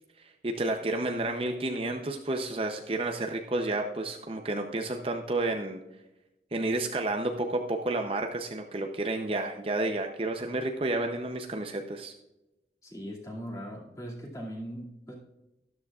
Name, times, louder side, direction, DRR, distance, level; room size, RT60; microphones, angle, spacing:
voice 1, 0.4-5.8 6.5-12.1, right 2 dB, 30° right, 4 dB, 0.6 m, -31 dB
voice 2, 12.8-15.2, equal, 20° left, -2 dB, 2.3 m, -40 dB
13.0 x 12.0 x 2.4 m, 0.95 s
head